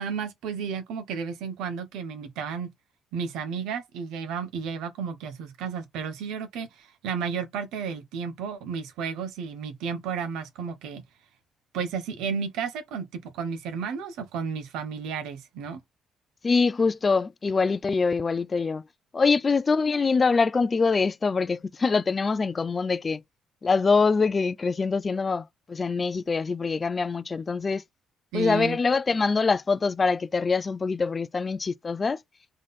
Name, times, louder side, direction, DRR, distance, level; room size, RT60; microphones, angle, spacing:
voice 1, 0.0-2.7 3.1-11.0 11.7-15.8 28.3-28.8, right 6 dB, 90° right, 1.2 m, -32 dB
voice 2, 16.4-18.8 19.1-23.2 23.6-27.8 28.3-32.2, left 4 dB, 30° left, 0.4 m, -24 dB
3.8 x 3.2 x 4.2 m
cardioid pair, 120°, 0 cm